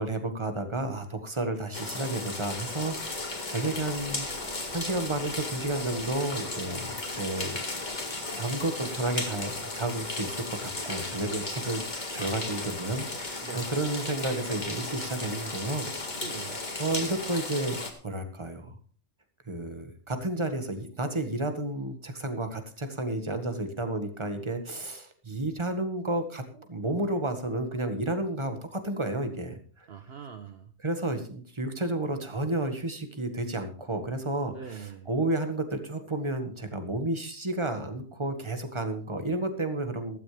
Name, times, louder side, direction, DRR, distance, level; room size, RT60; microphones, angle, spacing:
voice 1, 0.0-4.3 4.7-7.6 8.3-15.9 16.1-16.2 16.8-18.8 19.5-29.9 30.8-40.2, right 2 dB, 25° right, 7 dB, 1.7 m, -31 dB
sound 1, 1.7-17.9, left 2 dB, 35° left, 2.0 m, -35 dB
voice 2, 13.4-13.7 16.1-16.6 29.9-30.7 34.5-35.1, right 7 dB, 55° right, 9 dB, 1.0 m, -42 dB
15.0 x 13.0 x 3.4 m, 0.43 s
omnidirectional pair, 1.3 m